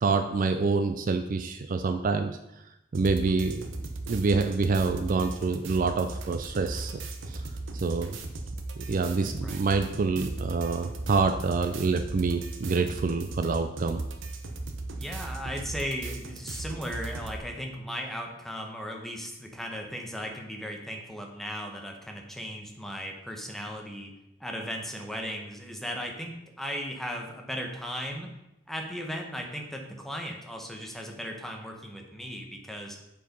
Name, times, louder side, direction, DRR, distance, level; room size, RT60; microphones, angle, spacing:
voice 1, 0.0-2.3 2.9-3.7 4.1-7.0 7.3-7.4 7.7-8.2 8.8-14.0, right 4 dB, 45° right, 8 dB, 0.4 m, -27 dB
sound 1, 2.9-17.4, right 2 dB, 75° right, 0.9 m, -37 dB
voice 2, 15.0-24.1 24.4-28.3 28.7-33.0, equal, ahead, 1 dB, 1.0 m, -36 dB
7.4 x 4.7 x 5.3 m, 0.89 s
head